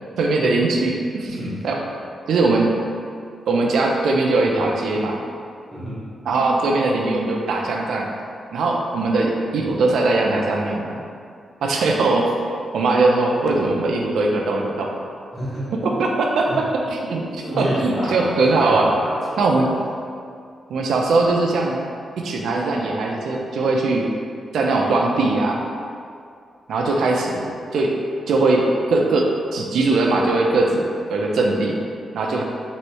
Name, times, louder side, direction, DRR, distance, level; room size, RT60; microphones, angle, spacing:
voice 1, 0.2-1.8 2.3-2.7 3.5-5.2 6.3-8.1 8.5-11.0 11.6-14.9 15.8-18.9 19.4-19.7 20.7-21.8 22.2-24.1 24.5-25.6 26.7-27.9 28.3-31.8 32.1-32.4, right 2 dB, 85° right, 0 dB, 0.5 m, -20 dB
voice 2, 5.7-6.0 15.3-15.8 16.5-16.6 17.2-18.2 18.5-19.4, equal, 10° left, -9 dB, 1.4 m, -29 dB
3.1 x 3.0 x 4.6 m, 2.3 s
wide cardioid pair, 125°, 0 cm